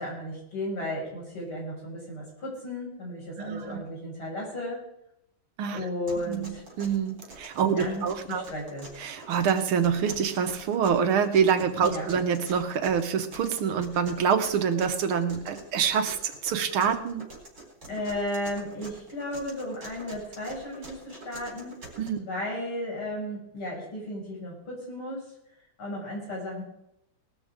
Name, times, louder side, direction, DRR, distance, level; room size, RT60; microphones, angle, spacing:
voice 1, 0.0-4.9 5.7-6.6 7.6-8.9 11.8-12.1 15.3-15.7 17.8-21.9 22.2-25.3 25.8-26.6, left 1 dB, 85° left, -3 dB, 6.8 m, -34 dB
voice 2, 3.4-3.8 5.6-5.8 6.3-8.4 9.0-17.3 22.0-22.2, right 7 dB, 85° right, 8 dB, 2.0 m, -26 dB
sound 1, 6.1-22.1, right 2 dB, 55° right, 4.7 m, -46 dB
19.5 x 13.0 x 3.7 m, 0.80 s
omnidirectional pair, 2.3 m